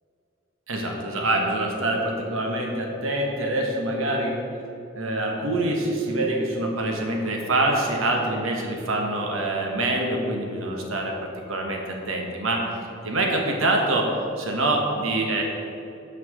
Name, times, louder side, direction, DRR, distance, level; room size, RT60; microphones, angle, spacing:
voice 1, 0.7-4.4 4.9-12.7 13.0-14.1 14.4-15.4, right 2 dB, 75° right, 1 dB, 1.2 m, -25 dB
6.3 x 5.8 x 7.2 m, 2.7 s
head